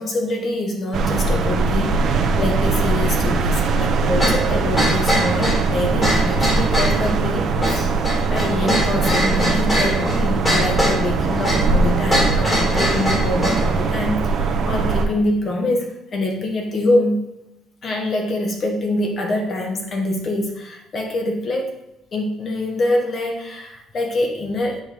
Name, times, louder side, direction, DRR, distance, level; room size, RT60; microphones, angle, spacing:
voice 1, 0.0-7.9 8.3-17.2 17.8-21.8 22.1-24.8, left 1 dB, 40° left, 1 dB, 1.4 m, -24 dB
sound 1, 0.9-15.1, right 4 dB, 50° right, 0.8 m, -21 dB
sound 2, 4.2-13.7, equal, 20° left, 2.5 m, -22 dB
8.5 x 4.8 x 3.5 m, 0.90 s
cardioid pair, 140°, 0 cm